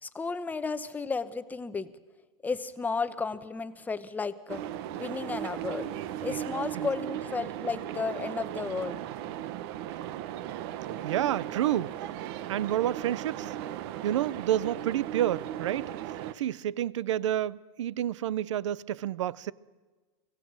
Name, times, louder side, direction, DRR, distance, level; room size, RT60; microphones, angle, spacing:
voice 1, 0.0-1.9 2.4-4.6 5.0-5.9 6.2-9.0, left 4 dB, 10° left, 0.8 m, -33 dB
sound 1, 4.5-16.3, right 12 dB, 55° right, 1.0 m, -37 dB
voice 2, 11.0-11.9 12.5-13.5 14.0-15.8 16.4-19.5, right 12 dB, 90° right, 0.6 m, -29 dB
24.5 x 17.0 x 6.3 m
supercardioid pair, 135°, 15 cm